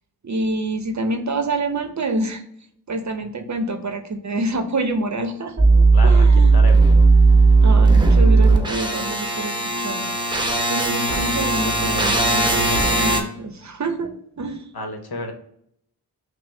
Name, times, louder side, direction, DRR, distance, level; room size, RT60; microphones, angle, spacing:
voice 1, 0.2-2.4 2.9-6.5 7.6-10.1 10.7-14.6, right 2 dB, 45° right, 7 dB, 0.6 m, -27 dB
sound 1, 5.6-13.2, right 3 dB, 10° right, 0.8 m, -16 dB
voice 2, 5.9-6.3 6.5-6.9 14.7-15.3, left 2 dB, 65° left, 4 dB, 0.9 m, -30 dB
5.6 x 2.0 x 3.1 m, 0.70 s
wide cardioid pair, 60°, 40 cm